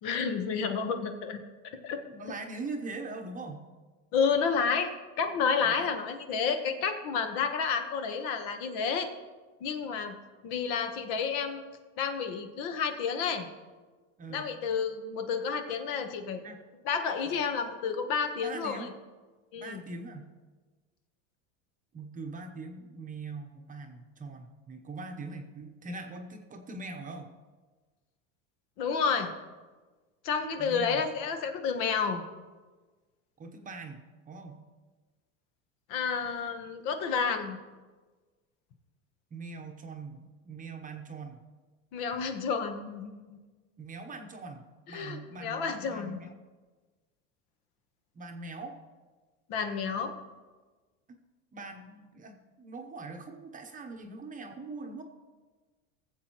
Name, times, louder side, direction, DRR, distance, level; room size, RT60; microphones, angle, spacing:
voice 1, 0.0-1.4 1.8-2.0 4.1-4.9 5.2-9.1 9.6-10.1 10.4-11.6 12.0-13.5 14.3-16.4 16.8-18.9 19.5-19.8 28.8-29.3 30.2-32.2 35.9-37.6 41.9-43.4 44.9-46.3 49.5-50.1, left 6 dB, 60° left, 7 dB, 1.2 m, -30 dB
voice 2, 2.1-3.7 5.6-5.9 14.2-14.5 16.4-16.6 17.2-17.5 18.4-18.9 19.6-20.3 21.9-27.3 30.6-31.0 33.4-34.6 39.3-41.4 43.8-46.3 48.1-48.8 51.5-55.0, right 3 dB, 20° right, 4 dB, 0.9 m, -42 dB
17.0 x 7.6 x 3.0 m, 1.3 s
supercardioid pair, 135°, 38 cm